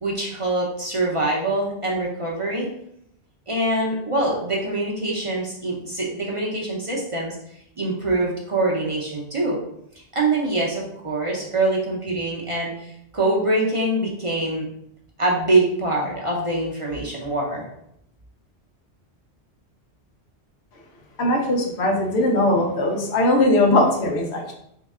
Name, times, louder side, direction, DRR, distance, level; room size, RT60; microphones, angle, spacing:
voice 1, 0.0-2.7 3.5-7.3 7.8-9.6 10.1-14.7 15.2-17.7, right 2 dB, 35° right, -3 dB, 0.6 m, -24 dB
voice 2, 21.2-24.5, left 1 dB, 80° left, 1 dB, 1.0 m, -20 dB
3.1 x 2.8 x 3.5 m, 0.74 s
omnidirectional pair, 1.1 m